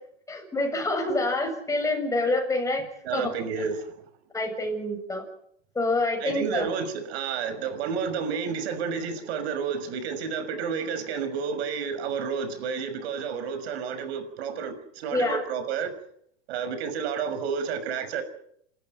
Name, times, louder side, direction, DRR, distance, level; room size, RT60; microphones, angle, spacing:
voice 1, 0.3-2.9 3.1-3.3 4.3-5.2 5.8-6.7 15.1-15.4, left 2 dB, 10° left, 4 dB, 7.0 m, -27 dB
voice 2, 3.0-4.0 6.2-15.9 16.5-18.2, right 6 dB, 70° right, 11 dB, 6.1 m, -30 dB
28.0 x 14.0 x 9.1 m, 0.69 s
supercardioid pair, 140°, 33 cm